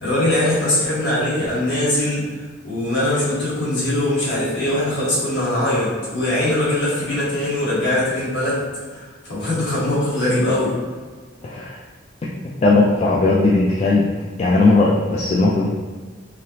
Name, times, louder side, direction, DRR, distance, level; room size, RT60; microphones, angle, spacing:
voice 1, 0.0-10.7, left 1 dB, 60° left, -9 dB, 1.4 m, -21 dB
voice 2, 11.4-11.8 12.6-14.1 14.4-15.7, left 3 dB, 35° left, -5 dB, 0.3 m, -17 dB
3.3 x 2.8 x 2.8 m, 1.5 s
head